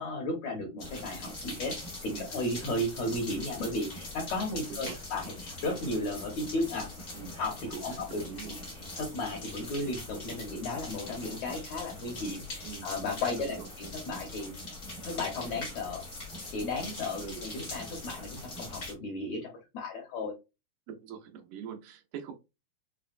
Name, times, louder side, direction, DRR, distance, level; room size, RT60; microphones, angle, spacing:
voice 1, 0.0-6.9 7.4-8.2 8.8-14.5 15.0-16.0 16.5-20.3, left 2 dB, 70° left, 0 dB, 1.7 m, -34 dB
sound 1, 0.8-18.9, left 2 dB, 90° left, 0.7 m, -42 dB
voice 2, 7.7-8.5 12.6-12.9 13.4-13.7 17.2-17.4 20.9-22.3, right 7 dB, 90° right, 3 dB, 2.8 m, -43 dB
6.2 x 2.1 x 2.4 m, 0.25 s
omnidirectional pair, 4.2 m